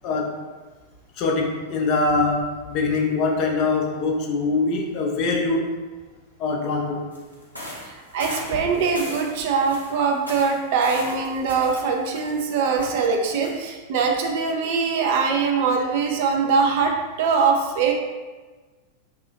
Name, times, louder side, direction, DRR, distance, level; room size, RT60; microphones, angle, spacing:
voice 1, 1.2-5.7 6.4-7.0, left 3 dB, 40° left, 0 dB, 0.4 m, -23 dB
sound 1, 7.1-12.4 12.7-13.0 13.3-13.5, equal, 85° left, 0.7 m, -38 dB
voice 2, 7.9-17.9, right 5 dB, 50° right, 2 dB, 0.3 m, -22 dB
2.8 x 2.3 x 3.8 m, 1.3 s
figure-of-eight pair, 90°, 0 cm